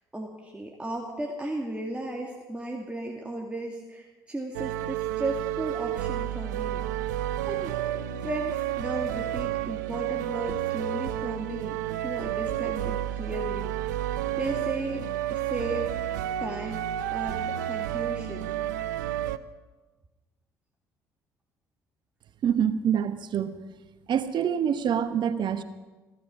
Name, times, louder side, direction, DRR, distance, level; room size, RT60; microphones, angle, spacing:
voice 1, 0.1-6.8 7.5-7.8 8.1-13.7 14.1-15.9 16.4-18.5, right 1 dB, 10° right, -1 dB, 2.3 m, -35 dB
sound 1, 4.5-19.4, right 12 dB, 85° right, 0.5 m, -31 dB
voice 2, 22.4-23.5 24.1-25.6, right 8 dB, 55° right, 11 dB, 1.2 m, -26 dB
16.0 x 13.0 x 6.1 m, 1.2 s
hypercardioid pair, 60°, 9 cm